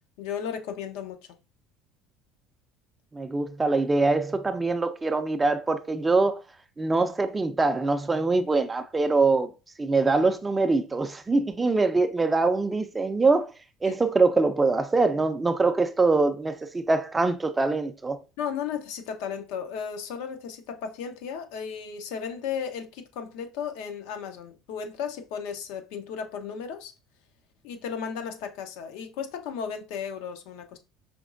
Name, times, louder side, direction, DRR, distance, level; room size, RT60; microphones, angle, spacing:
voice 1, 0.2-1.2 13.8-14.0 18.4-26.9 27.6-30.8, left 7 dB, 80° left, 0.7 m, -35 dB
voice 2, 3.1-6.4 6.8-9.5 9.8-13.5 13.8-18.2, right 3 dB, 15° right, 0.4 m, -23 dB
5.1 x 3.0 x 2.5 m
supercardioid pair, 110°, 0 cm